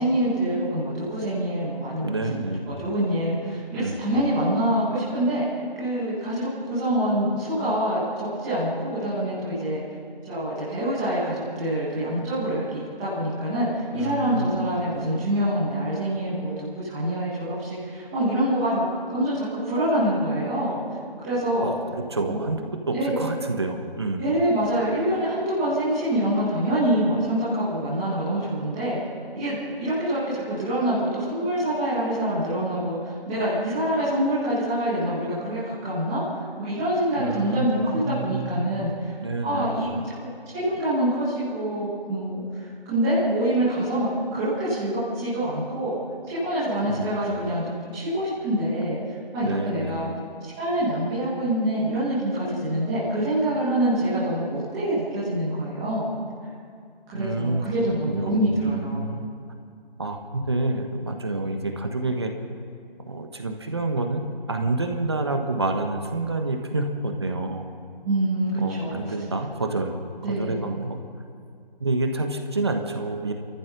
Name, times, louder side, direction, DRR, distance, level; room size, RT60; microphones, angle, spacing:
voice 1, 0.0-5.5 5.8-9.8 10.3-20.8 21.2-21.7 22.3-22.4 22.9-23.1 24.2-29.0 29.3-33.0 33.3-36.2 36.6-39.1 39.4-40.1 40.5-46.0 46.2-49.0 49.3-50.1 50.6-56.1 57.1-59.1 68.0-69.0 70.2-70.5, right 1 dB, 5° right, -12 dB, 1.2 m, -25 dB
voice 2, 2.0-2.7 3.7-4.0 13.9-14.5 21.6-22.6 22.9-24.3 37.2-38.9 39.2-40.0 46.9-47.2 49.4-49.9 57.1-57.7 58.1-59.3 60.0-62.3 63.1-67.7 68.6-69.9 70.3-71.0 71.8-73.3, right 2 dB, 25° right, 4 dB, 1.3 m, -28 dB
29.0 x 14.0 x 6.7 m, 2.3 s
figure-of-eight pair, 175°, 29 cm